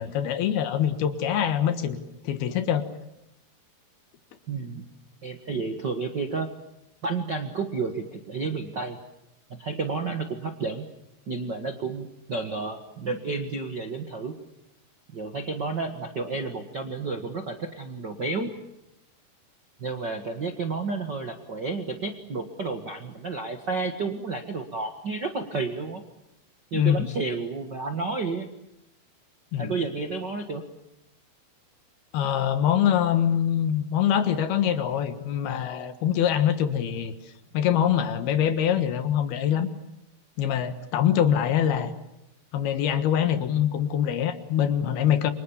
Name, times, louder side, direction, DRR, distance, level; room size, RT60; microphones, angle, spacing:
voice 1, 0.0-2.0 2.2-2.9 26.7-27.1 29.5-29.7 32.1-37.1 37.5-39.7 40.4-41.9 42.5-45.3, left 9 dB, 70° left, 10 dB, 3.3 m, -24 dB
voice 2, 4.5-4.8 5.2-6.5 7.0-9.0 9.5-10.8 11.3-14.4 15.1-18.5 19.8-26.0 26.7-28.5 29.6-30.6, right 4 dB, 50° right, 6 dB, 1.3 m, -31 dB
29.5 x 25.5 x 7.2 m, 0.87 s
omnidirectional pair, 4.7 m